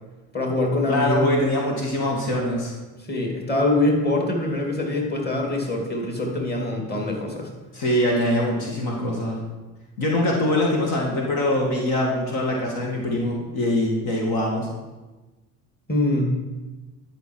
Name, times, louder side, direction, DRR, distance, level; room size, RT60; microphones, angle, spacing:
voice 1, 0.3-1.3 3.1-7.5 15.9-16.4, left 2 dB, 25° left, 0 dB, 2.5 m, -24 dB
voice 2, 0.9-2.7 7.7-9.4 10.0-14.7, left 1 dB, 65° left, -1 dB, 2.1 m, -23 dB
11.5 x 5.7 x 4.6 m, 1.2 s
hypercardioid pair, 70°, 39 cm